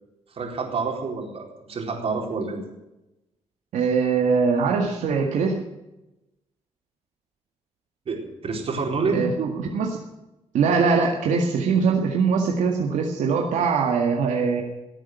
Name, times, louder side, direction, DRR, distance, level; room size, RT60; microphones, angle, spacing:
voice 1, 0.3-2.6 8.1-9.3, right 4 dB, 55° right, 1 dB, 4.2 m, -28 dB
voice 2, 3.7-5.6 9.1-10.0 10.5-14.6, right 5 dB, 80° right, 1 dB, 1.9 m, -22 dB
17.0 x 8.8 x 9.3 m, 0.95 s
cardioid pair, 95°, 12 cm